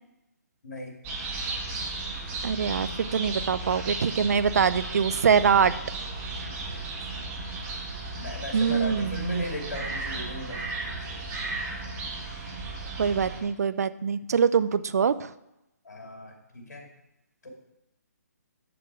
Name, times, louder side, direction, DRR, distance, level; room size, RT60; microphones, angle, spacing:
voice 1, 0.6-0.9 7.1-7.3 8.2-10.7 15.8-16.9 17.4-17.5, equal, 75° left, 0 dB, 2.5 m, -36 dB
sound 1, 1.0-13.4, right 3 dB, 20° right, 1.5 m, -35 dB
voice 2, 2.4-5.7 8.5-9.3 13.0-15.3, right 6 dB, 65° right, 15 dB, 0.4 m, -24 dB
7.8 x 7.0 x 4.8 m, 0.91 s
hypercardioid pair, 150°, 9 cm